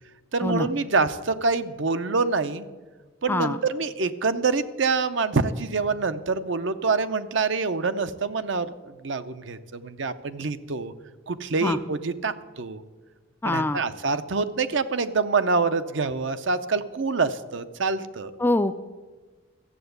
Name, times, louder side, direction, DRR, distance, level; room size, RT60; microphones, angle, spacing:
voice 1, 0.3-2.7 3.2-10.9 11.3-12.8 13.4-18.3, right 4 dB, 65° right, 11 dB, 0.6 m, -26 dB
voice 2, 13.4-13.8 18.4-18.7, left 2 dB, 10° left, 11 dB, 0.3 m, -24 dB
14.0 x 7.9 x 8.0 m, 1.3 s
head